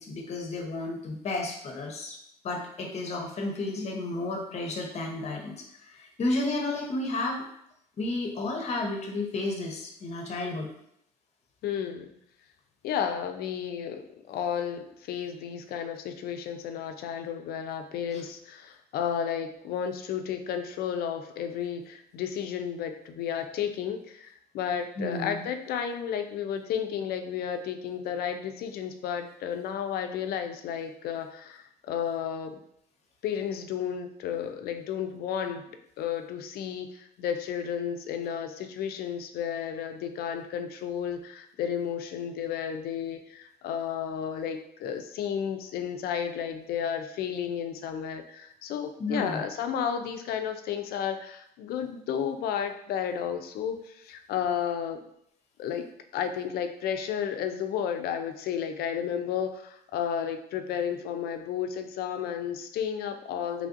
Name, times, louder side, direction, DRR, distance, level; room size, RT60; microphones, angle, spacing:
voice 1, 0.0-2.2 2.4-5.5 5.8-7.4 8.0-10.7 25.0-25.5 49.0-49.4, left 2 dB, 40° left, 1 dB, 0.7 m, -32 dB
voice 2, 11.6-12.1 12.8-32.6 33.2-35.7 36.0-55.0 55.6-55.9 56.1-63.7, left 8 dB, 65° left, 7 dB, 0.4 m, -32 dB
3.2 x 2.5 x 2.4 m, 0.73 s
cardioid pair, 110°, 17 cm